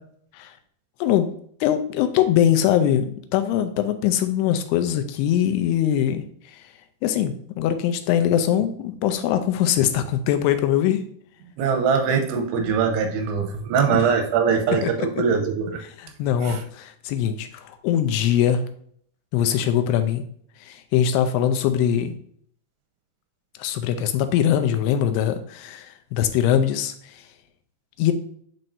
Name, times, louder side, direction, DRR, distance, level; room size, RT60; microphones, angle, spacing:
voice 1, 1.6-6.6 7.0-11.0 13.9-14.1 14.8-15.1 16.0-18.7 19.3-20.2 20.6-22.2 23.6-27.2 28.0-28.1, left 10 dB, 85° left, 9 dB, 2.6 m, -22 dB
voice 2, 11.6-15.8 16.4-16.6, right 6 dB, 85° right, 5 dB, 2.9 m, -22 dB
9.2 x 4.3 x 2.6 m, 0.63 s
omnidirectional pair, 4.8 m